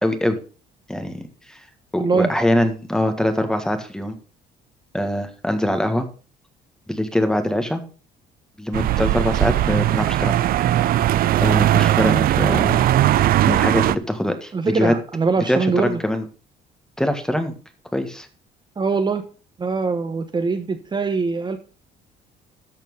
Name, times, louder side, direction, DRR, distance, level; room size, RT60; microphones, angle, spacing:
voice 1, 0.0-0.4 0.9-1.2 1.5-1.6 1.9-4.2 4.9-6.1 6.9-7.8 8.6-10.4 10.7-10.8 11.4-12.8 13.5-14.9 15.5-16.2 17.0-17.5 17.9-18.3, left 1 dB, 5° left, 7 dB, 1.6 m, -23 dB
voice 2, 2.0-2.3 14.5-16.0 18.8-19.2 19.6-21.6, right 4 dB, 25° right, 7 dB, 1.0 m, -22 dB
sound 1, 8.7-13.9, right 13 dB, 60° right, 0.5 m, -18 dB
13.5 x 4.5 x 5.4 m, 0.37 s
cardioid pair, 110°, 17 cm